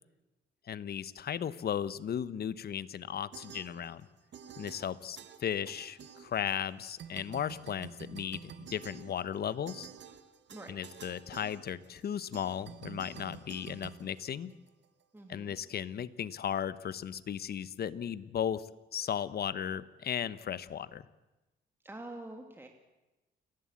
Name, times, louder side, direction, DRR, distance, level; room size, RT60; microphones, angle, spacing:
voice 1, 0.7-4.1 4.6-9.9 10.7-14.5 15.3-21.0, left 9 dB, 50° left, 16 dB, 1.0 m, -36 dB
sound 1, 3.3-4.1 4.3-6.7 7.0-14.8, right 8 dB, 65° right, 1.5 m, -49 dB
voice 2, 10.5-10.8 15.1-15.6 21.8-22.7, right 2 dB, 10° right, 3 dB, 2.2 m, -46 dB
29.5 x 11.5 x 8.5 m, 1.1 s
cardioid pair, 90°, 20 cm